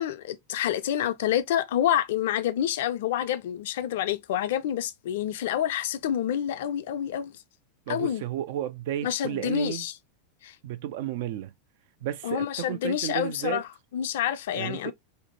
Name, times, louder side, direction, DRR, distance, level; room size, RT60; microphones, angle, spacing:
voice 1, 0.0-7.3 7.9-8.2 9.0-9.9 10.4-10.5 12.2-14.9, left 10 dB, 60° left, 0.3 m, -28 dB
voice 2, 7.9-9.8 10.6-11.5 12.0-13.6 14.5-14.9, right 11 dB, 55° right, 0.3 m, -32 dB
2.5 x 2.1 x 2.8 m
figure-of-eight pair, 90°, 0 cm